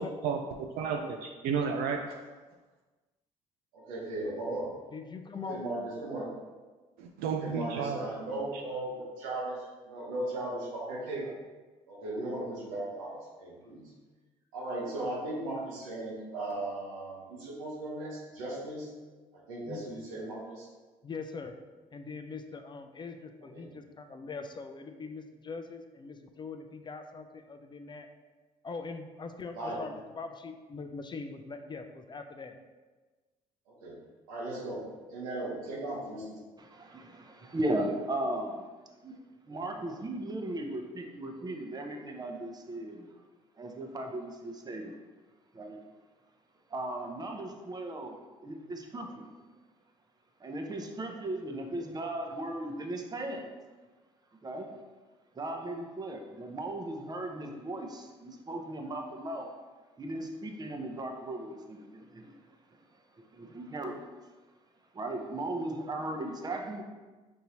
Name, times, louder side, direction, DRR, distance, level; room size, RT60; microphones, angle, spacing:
voice 1, 0.0-2.2 7.0-8.0 8.5-8.6, right 6 dB, 70° right, 3 dB, 0.4 m, -32 dB
voice 2, 3.7-4.7 5.5-6.3 7.4-11.3 11.9-13.9 14.5-18.9 19.3-20.7 23.5-23.7 29.6-29.9 33.7-34.0 34.3-34.8 35.1-36.4, right 2 dB, 85° right, -3 dB, 1.0 m, -37 dB
voice 3, 4.9-5.6 19.7-19.8 21.0-21.6 21.9-28.1 28.6-32.6, left 4 dB, 30° left, 6 dB, 0.4 m, -42 dB
voice 4, 36.6-38.6 39.0-39.1 39.5-43.1 43.6-45.0 45.5-45.8 46.7-49.2 50.4-53.4 54.4-54.8 55.4-59.5 60.0-62.3 63.2-64.0 64.9-66.8, right 1 dB, 25° right, 3 dB, 0.7 m, -37 dB
5.3 x 2.7 x 2.9 m, 1.3 s
hypercardioid pair, 60°, 16 cm